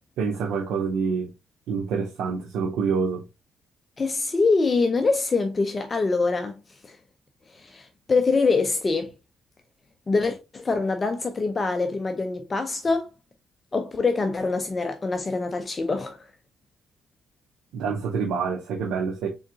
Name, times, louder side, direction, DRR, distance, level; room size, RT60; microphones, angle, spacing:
voice 1, 0.2-1.3 1.7-3.2 17.7-19.3, right 5 dB, 85° right, 0.6 m, -27 dB
voice 2, 4.0-6.6 6.8-7.0 7.5-9.1 10.1-13.1 13.7-16.3, left 4 dB, 30° left, 0.5 m, -24 dB
3.8 x 3.5 x 2.6 m
cardioid pair, 90°, 0 cm